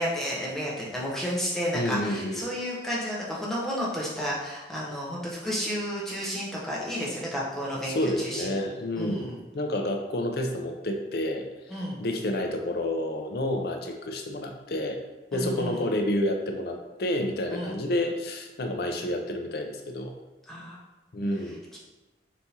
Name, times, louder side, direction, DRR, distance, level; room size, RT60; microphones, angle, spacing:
voice 1, 0.0-8.5 9.0-9.4 11.7-12.0 15.3-15.9 17.5-17.8 20.5-20.8, equal, ahead, -6 dB, 0.8 m, -31 dB
voice 2, 1.7-2.4 7.9-15.0 15.3-20.1 21.1-21.6, left 1 dB, 60° left, 3 dB, 0.5 m, -29 dB
4.1 x 3.5 x 2.8 m, 1.1 s
head